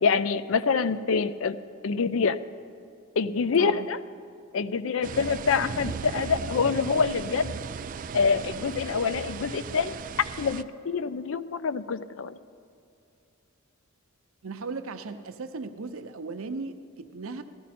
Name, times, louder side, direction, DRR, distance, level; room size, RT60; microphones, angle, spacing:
voice 1, 0.0-1.6 1.8-2.4 3.2-4.0 4.5-7.5 8.1-12.4, left 5 dB, 65° left, 15 dB, 0.4 m, -26 dB
voice 2, 3.6-3.9 14.4-17.4, right 4 dB, 75° right, 8 dB, 0.7 m, -37 dB
sound 1, 5.0-10.6, right 5 dB, 40° right, 0.3 m, -36 dB
16.0 x 13.5 x 4.3 m, 2.6 s
head